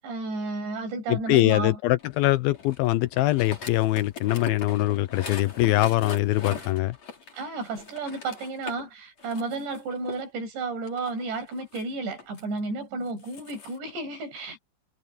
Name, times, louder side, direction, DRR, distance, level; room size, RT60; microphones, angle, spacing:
voice 1, 0.0-1.8 7.3-14.6, right 3 dB, 80° right, 9.3 m, -32 dB
voice 2, 1.1-7.0, left 17 dB, 85° left, 2.2 m, -23 dB
sound 1, 2.0-8.9 9.2-10.2 10.9-12.4 13.1-13.8, left 5 dB, 40° left, 5.1 m, -40 dB
omnidirectional pair, 4.9 m